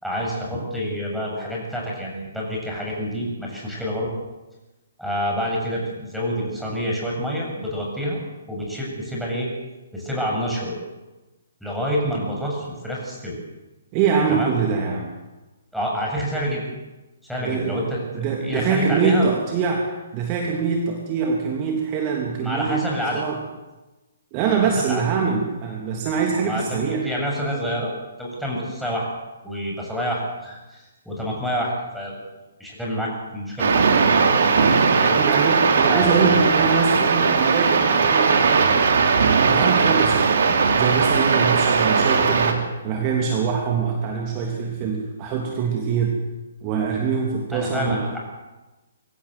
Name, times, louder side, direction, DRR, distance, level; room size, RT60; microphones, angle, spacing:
voice 1, 0.0-4.1 5.0-8.2 8.5-9.5 9.9-10.8 11.6-13.4 14.3-14.5 15.7-16.6 17.2-19.2 22.4-23.2 24.4-25.0 26.4-29.1 29.4-32.1 32.6-34.0 34.9-35.2 35.9-36.1 47.5-48.2, equal, ahead, -4 dB, 7.7 m, -28 dB
voice 2, 13.9-15.1 17.4-17.9 18.1-22.8 23.1-23.4 24.3-27.1 35.2-38.8 39.4-46.2 46.6-48.2, right 5 dB, 30° right, 1 dB, 3.1 m, -24 dB
Suburban Rainstorm, 33.6-42.5, right 5 dB, 55° right, 3.1 m, -18 dB
24.0 x 16.5 x 7.8 m, 1.1 s
figure-of-eight pair, 130°, 0 cm